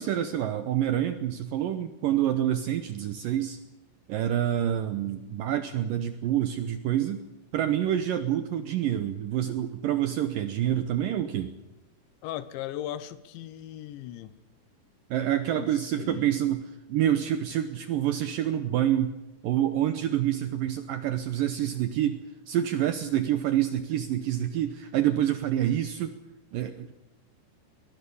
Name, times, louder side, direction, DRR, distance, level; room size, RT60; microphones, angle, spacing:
voice 1, 0.0-3.6 4.1-7.2 7.5-11.5 15.1-19.2 19.4-22.2 22.5-26.1 26.5-26.9, right 11 dB, 75° right, 9 dB, 2.1 m, -27 dB
voice 2, 12.2-14.3 15.5-15.7 16.0-16.3, left 12 dB, 90° left, 15 dB, 3.3 m, -37 dB
22.5 x 19.5 x 7.1 m, 0.96 s
omnidirectional pair, 5.1 m